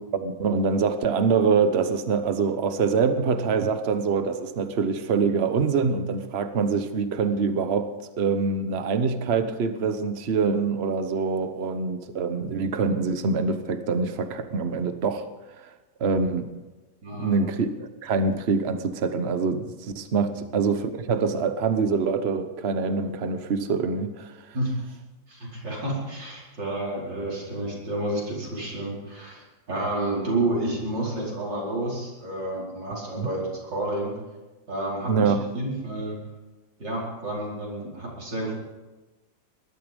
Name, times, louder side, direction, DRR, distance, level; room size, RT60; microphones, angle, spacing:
voice 1, 0.1-15.3 15.6-15.7 16.0-16.5 17.2-24.3 33.2-33.3 35.1-35.4, right 5 dB, 40° right, 10 dB, 1.1 m, -25 dB
voice 2, 17.0-17.4 24.5-24.7 25.3-34.1 34.7-36.2 36.8-38.5, right 1 dB, 70° right, -4 dB, 5.4 m, -30 dB
19.5 x 12.5 x 5.3 m, 1.1 s
omnidirectional pair, 2.0 m